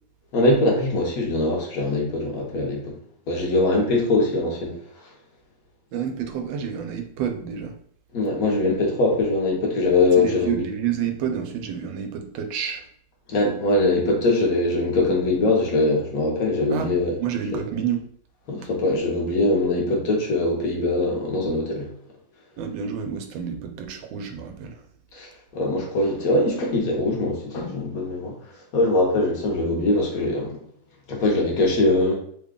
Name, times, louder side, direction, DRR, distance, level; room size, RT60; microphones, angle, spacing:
voice 1, 0.3-2.9 3.3-4.7 8.1-10.6 13.3-17.2 17.5-17.6 18.5-21.9 25.1-25.3 25.5-28.3 28.7-30.6 31.1-32.1, left 2 dB, 60° left, 0 dB, 1.2 m, -22 dB
voice 2, 5.9-7.7 10.2-12.8 16.7-16.9 17.2-18.0 22.6-24.8, right 8 dB, 90° right, 6 dB, 1.3 m, -29 dB
3.4 x 2.2 x 3.6 m, 0.63 s
omnidirectional pair, 2.0 m